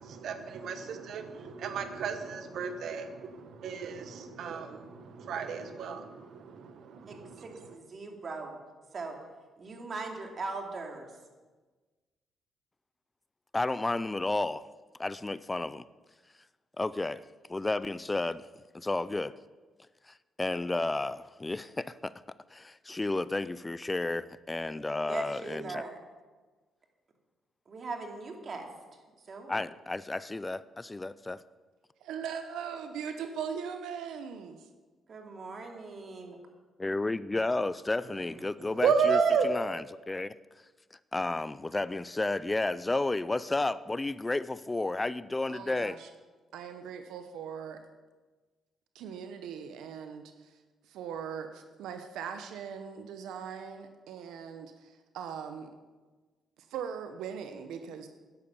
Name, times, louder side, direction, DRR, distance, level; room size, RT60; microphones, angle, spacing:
voice 1, 0.0-7.4 38.8-39.5, right 5 dB, 70° right, 8 dB, 1.2 m, -32 dB
voice 2, 7.1-8.6 8.9-9.2 9.6-11.1 25.1-26.0 27.7-29.0 29.3-29.6 35.1-36.4, right 3 dB, 45° right, 2 dB, 2.6 m, -40 dB
voice 3, 13.5-14.7 15.0-15.8 16.8-18.5 18.7-19.3 20.1-22.1 22.5-25.8 29.5-31.4 36.8-40.4 41.1-46.0, left 2 dB, 20° left, 17 dB, 0.4 m, -32 dB
voice 4, 32.0-34.7 45.5-46.1 46.5-47.8 48.9-55.7 56.7-58.1, right 7 dB, 85° right, 7 dB, 0.9 m, -40 dB
11.0 x 10.5 x 7.1 m, 1.3 s
cardioid pair, 90°, 0 cm